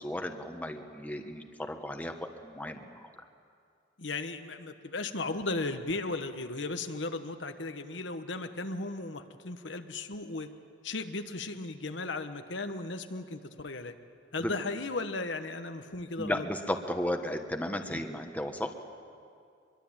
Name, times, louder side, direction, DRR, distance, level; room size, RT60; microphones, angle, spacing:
voice 1, 0.0-3.1 14.4-14.5 16.2-18.8, left 1 dB, 10° left, 5 dB, 1.3 m, -35 dB
voice 2, 4.0-10.5 10.8-13.9 14.3-16.4 17.9-18.0, left 3 dB, 70° left, 7 dB, 1.2 m, -36 dB
24.5 x 23.0 x 8.8 m, 2.3 s
head